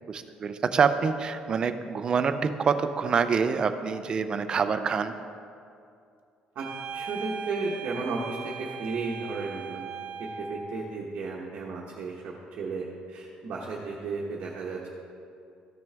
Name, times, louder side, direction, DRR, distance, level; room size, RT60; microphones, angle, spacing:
voice 1, 0.0-5.1, right 6 dB, 30° right, 9 dB, 0.4 m, -26 dB
sound 1, 6.6-10.8, right 5 dB, 75° right, 0.7 m, -39 dB
voice 2, 6.9-9.9 10.2-14.9, right 4 dB, 55° right, -4 dB, 1.1 m, -34 dB
14.0 x 6.2 x 3.4 m, 2.5 s
cardioid pair, 150°, 3 cm